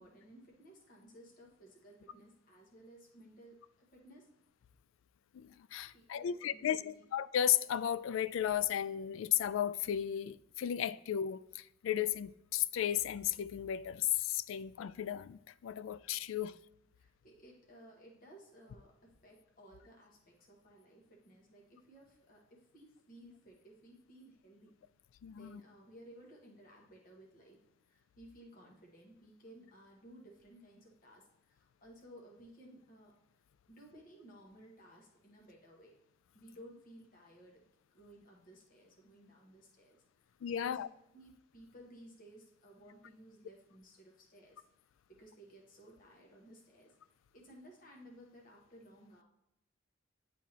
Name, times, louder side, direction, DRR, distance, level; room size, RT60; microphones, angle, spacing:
voice 1, 0.0-4.3 5.9-7.0 14.5-14.6 16.9-24.7 25.3-27.6 27.9-33.1 33.7-36.0 36.3-40.0 40.2-40.8 41.1-44.6 45.1-46.9 47.3-49.2, right 1 dB, 45° left, 1.2 m, -57 dB
voice 2, 5.3-16.5 25.2-25.6 40.4-40.9, left 10 dB, 80° left, 0.3 m, -34 dB
10.0 x 3.5 x 2.9 m
head